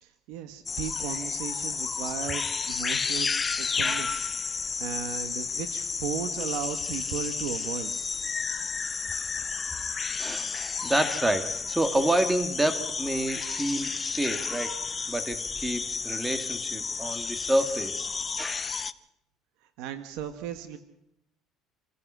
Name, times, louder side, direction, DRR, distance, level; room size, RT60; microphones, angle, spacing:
voice 1, 0.0-3.3 3.6-7.9 19.8-20.8, right 9 dB, 85° right, 9 dB, 1.5 m, -36 dB
sound 1, 0.7-18.9, left 5 dB, 20° left, 0.7 m, -32 dB
voice 2, 10.2-18.1 18.4-18.7, right 1 dB, 10° right, 8 dB, 2.0 m, -29 dB
27.5 x 16.0 x 6.2 m, 0.82 s
cardioid pair, 145°, 0 cm